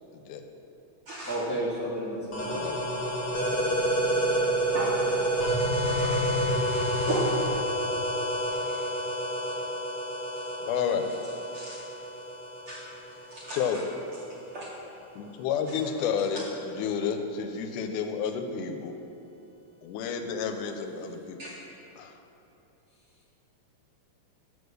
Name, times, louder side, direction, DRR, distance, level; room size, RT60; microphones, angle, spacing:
voice 1, 0.1-0.4 2.6-3.2 10.6-11.1 13.5-13.8 15.2-18.9 19.8-21.4 22.0-22.1, left 7 dB, 85° left, 7 dB, 2.1 m, -31 dB
voice 2, 1.2-2.7 7.0-7.2, right 1 dB, 5° left, -8 dB, 0.9 m, -32 dB
sound 1, 2.3-13.7, equal, 45° left, 1.4 m, -29 dB
voice 3, 5.7-7.2 8.5-8.8 11.5-11.8 12.7-12.8 13.3-13.8 14.5-14.7 15.7-15.8 21.4-21.5, right 2 dB, 65° right, -6 dB, 1.4 m, -37 dB
8.0 x 4.8 x 6.5 m, 2.9 s
omnidirectional pair, 3.6 m